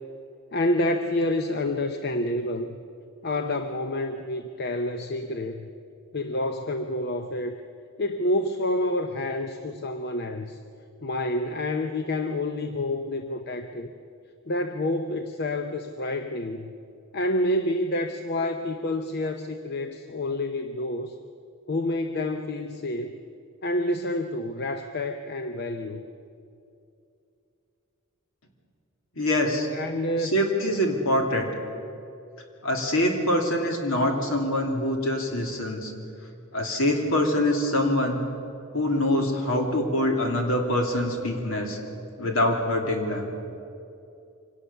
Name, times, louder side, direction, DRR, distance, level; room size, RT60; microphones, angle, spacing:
voice 1, 0.5-2.8 3.2-5.7 6.1-7.5 8.0-10.6 11.0-13.9 14.5-16.7 17.1-21.2 21.7-23.1 23.6-26.0 29.7-30.4, left 1 dB, 45° left, 7 dB, 0.7 m, -28 dB
voice 2, 29.2-29.7 30.2-31.5 32.6-35.9 36.5-38.2 38.7-41.8 42.2-43.3, left 1 dB, 65° left, 2 dB, 2.8 m, -24 dB
24.5 x 18.0 x 6.9 m, 2.6 s
head